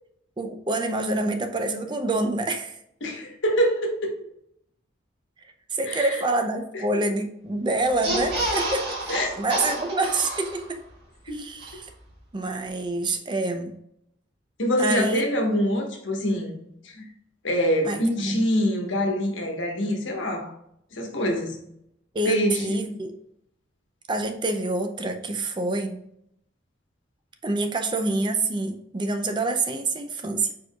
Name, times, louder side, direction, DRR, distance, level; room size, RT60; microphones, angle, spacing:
voice 1, 0.4-2.8 5.7-10.8 11.2-11.9 12.3-13.7 14.8-15.2 17.8-18.5 22.1-23.2 24.1-26.0 27.4-30.5, right 2 dB, 25° right, 6 dB, 0.4 m, -27 dB
voice 2, 3.0-4.2 5.9-6.3 6.7-6.8 9.1-9.3 11.3-11.4 11.7-11.8 14.6-16.5 16.8-17.0 17.4-20.5 20.9-21.6 22.2-22.8, equal, 80° left, 1 dB, 1.2 m, -25 dB
sound 1, 7.9-10.9 11.3-11.4 11.6-11.7, right 1 dB, 55° right, 1.8 m, -29 dB
4.6 x 4.6 x 2.3 m, 0.75 s
head